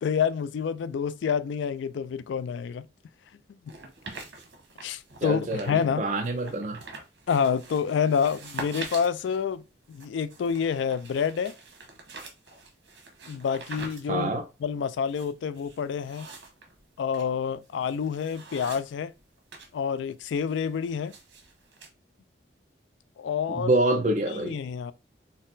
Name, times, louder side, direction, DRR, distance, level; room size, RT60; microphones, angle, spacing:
voice 1, 0.0-2.9 4.8-6.0 7.3-9.6 9.9-11.5 13.2-14.3 14.6-16.3 17.0-19.1 19.7-21.1 23.2-23.7 24.4-24.9, left 7 dB, 80° left, 0.3 m, -28 dB
sound 1, 3.7-5.9 6.2-19.7 20.0-21.9, right 3 dB, 80° right, 1.1 m, -45 dB
voice 2, 5.2-6.8 14.1-14.4 23.5-24.6, right 2 dB, 40° right, 0.5 m, -26 dB
4.1 x 2.0 x 3.8 m
head